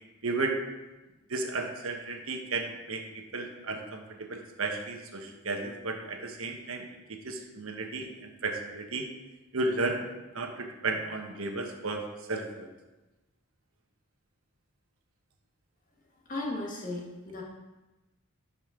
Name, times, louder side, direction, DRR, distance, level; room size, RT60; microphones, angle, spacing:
voice 1, 0.2-0.5 1.3-3.0 3.3-6.8 7.2-9.0 9.5-10.1 10.3-12.7, right 3 dB, 80° right, 3 dB, 1.2 m, -33 dB
voice 2, 16.3-17.4, left 2 dB, 40° left, -2 dB, 1.6 m, -35 dB
12.0 x 5.3 x 3.7 m, 1.1 s
head